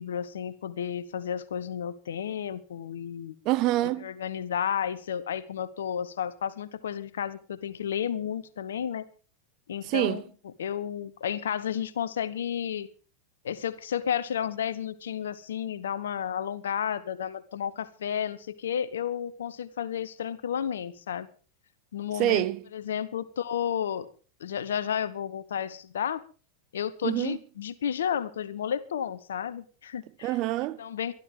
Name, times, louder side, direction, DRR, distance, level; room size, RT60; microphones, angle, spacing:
voice 1, 0.0-3.3 4.0-9.1 9.7-10.2 10.6-12.9 13.4-21.3 21.9-22.4 22.7-24.1 24.4-26.2 26.7-30.3 30.8-31.1, left 9 dB, 65° left, 1.1 m, -32 dB
voice 2, 3.4-4.1 9.8-10.2 22.1-22.6 27.0-27.4 30.2-30.8, right 16 dB, 40° right, 0.9 m, -26 dB
23.5 x 12.5 x 3.7 m
figure-of-eight pair, 90°, 0 cm